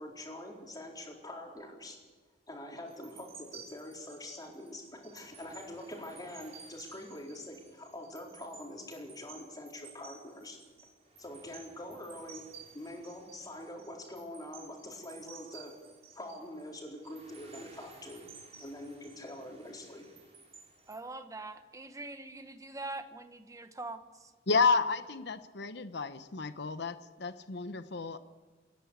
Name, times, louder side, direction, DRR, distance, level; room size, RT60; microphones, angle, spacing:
voice 1, 0.0-2.0 2.5-10.6 11.2-12.5 12.7-15.7 16.1-18.2 18.6-20.1, left 1 dB, 20° left, -1 dB, 4.2 m, -45 dB
sound 1, 2.9-21.0, right 5 dB, 35° right, 3.7 m, -55 dB
voice 2, 20.9-24.3, right 2 dB, 20° right, 9 dB, 1.2 m, -43 dB
voice 3, 24.5-28.2, left 4 dB, 65° left, 11 dB, 1.0 m, -31 dB
29.5 x 11.0 x 8.3 m, 1.4 s
head